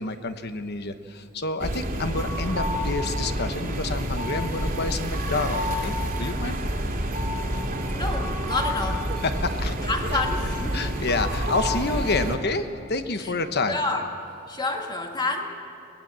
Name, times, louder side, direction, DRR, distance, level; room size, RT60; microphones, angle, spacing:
voice 1, 0.0-6.6 9.2-9.8 10.1-10.2 10.7-13.8, left 3 dB, 50° left, 9 dB, 1.1 m, -28 dB
sound 1, 1.6-12.4, equal, 40° right, 2.3 m, -28 dB
voice 2, 7.9-9.1 9.8-11.0 13.2-13.3 13.7-14.0 14.5-15.4, left 2 dB, 20° left, 2 dB, 2.0 m, -29 dB
23.5 x 19.0 x 7.6 m, 2.5 s
head